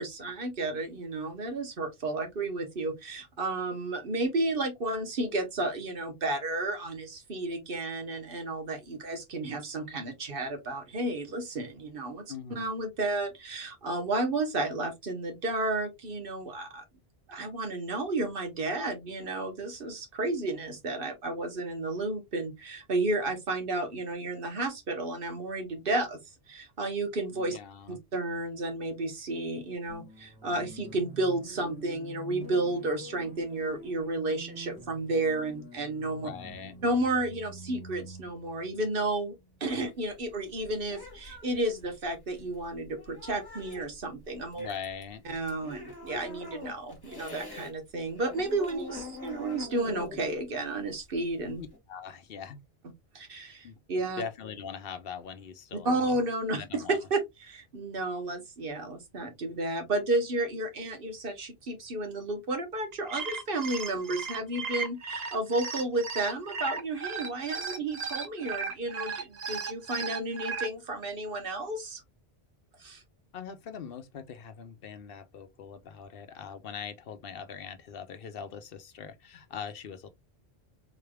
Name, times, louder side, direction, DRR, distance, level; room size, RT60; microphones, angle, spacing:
voice 1, 0.0-12.2 12.5-16.8 17.3-26.2 26.5-27.6 27.9-36.3 36.8-44.7 45.2-51.6 53.1-54.2 55.8-72.0 72.8-73.0, right 2 dB, 60° right, 1.2 m, -32 dB
voice 2, 12.3-12.7 27.3-28.0 36.2-36.7 44.6-45.2 51.6-52.6 53.6-53.8 54.2-56.2 56.6-57.0 73.3-80.1, left 7 dB, 65° left, 0.8 m, -41 dB
sound 1, 29.9-39.8, equal, 5° right, 1.1 m, -47 dB
sound 2, 39.6-47.7 48.0-51.8, left 3 dB, 20° left, 1.4 m, -45 dB
sound 3, 62.9-70.7, right 5 dB, 45° right, 0.7 m, -35 dB
3.9 x 3.3 x 2.2 m
omnidirectional pair, 1.1 m